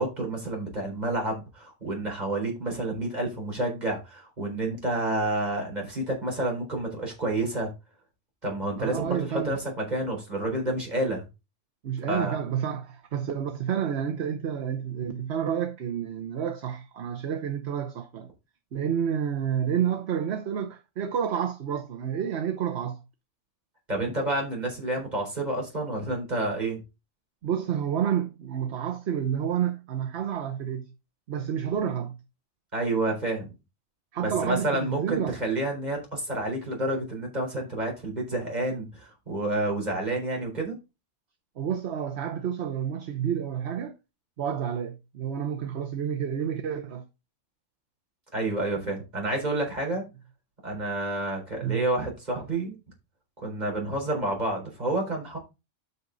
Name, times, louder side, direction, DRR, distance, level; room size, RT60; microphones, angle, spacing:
voice 1, 0.0-7.7 8.4-11.3 12.1-12.4 23.9-26.8 32.7-33.5 34.2-40.8 48.3-50.0 50.6-52.8 53.4-55.4, right 2 dB, 35° right, 4.3 m, -29 dB
voice 2, 8.8-9.6 11.8-18.3 18.7-23.0 27.4-30.9 31.3-32.2 34.1-35.4 41.6-43.9 44.4-47.0 51.6-51.9, right 8 dB, 65° right, 1.2 m, -29 dB
8.2 x 6.9 x 3.9 m
omnidirectional pair, 1.2 m